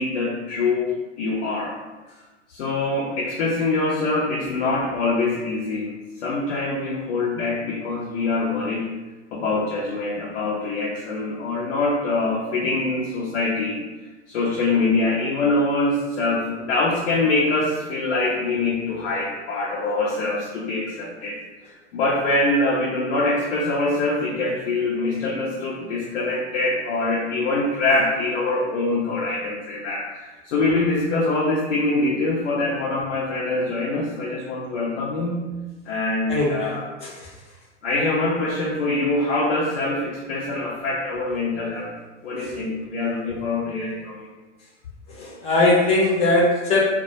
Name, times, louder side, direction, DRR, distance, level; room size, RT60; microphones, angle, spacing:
voice 1, 0.0-1.7 2.5-5.9 6.2-8.9 9.3-13.8 14.3-21.4 21.6-35.4 35.9-36.9 37.8-41.9 42.2-44.3, left 2 dB, 65° left, -4 dB, 0.6 m, -24 dB
voice 2, 36.3-37.3 42.4-42.5 45.1-46.8, left 2 dB, 20° left, -4 dB, 0.6 m, -21 dB
2.1 x 2.1 x 2.7 m, 1.2 s
hypercardioid pair, 115°, 36 cm